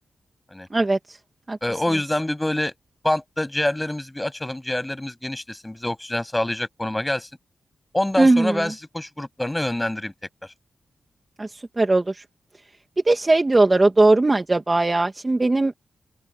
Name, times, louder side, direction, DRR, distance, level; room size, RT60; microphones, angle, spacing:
voice 1, 0.7-1.2 1.5-1.6 8.2-8.6 11.4-12.2 13.1-15.7, right 2 dB, 25° right, 2.2 m, -19 dB
voice 2, 1.6-2.7 3.0-7.3 7.9-10.1, left 1 dB, 10° left, 7.5 m, -26 dB
open air
cardioid pair, 80°, 0 cm